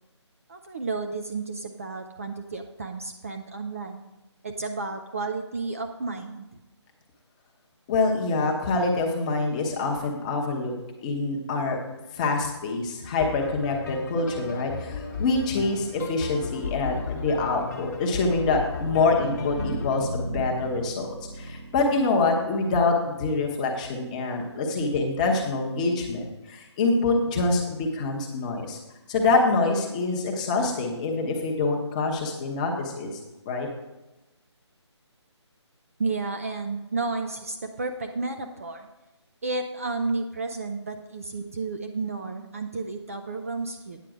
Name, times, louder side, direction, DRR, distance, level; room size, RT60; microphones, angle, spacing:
voice 1, 0.5-4.0 4.4-6.5 36.0-38.9 39.4-44.0, right 3 dB, 30° right, 5 dB, 0.5 m, -32 dB
voice 2, 7.9-10.7 11.0-11.8 12.1-28.8 29.1-33.1 33.5-33.7, left 3 dB, 15° left, 0 dB, 0.9 m, -25 dB
sound 1, 13.2-20.0, left 4 dB, 35° left, 1.1 m, -35 dB
sound 2, 18.8-23.6, right 1 dB, 80° right, 1.5 m, -36 dB
9.2 x 6.7 x 4.9 m, 1.0 s
figure-of-eight pair, 165°, 15 cm